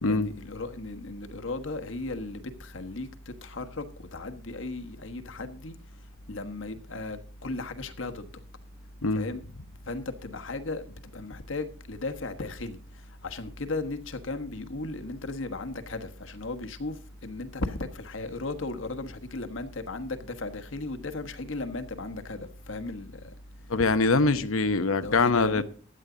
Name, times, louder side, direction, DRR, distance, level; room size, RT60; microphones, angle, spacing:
voice 1, 0.1-3.1 3.4-3.8 4.1-5.8 6.3-8.3 9.1-9.4 9.9-10.8 11.1-12.8 13.2-16.9 17.2-22.4 22.7-23.1 24.2-24.5 25.0-25.6, left 2 dB, 70° left, 1.3 m, -36 dB
voice 2, 23.7-25.6, left 3 dB, 85° left, 1.0 m, -23 dB
15.5 x 10.5 x 3.9 m
head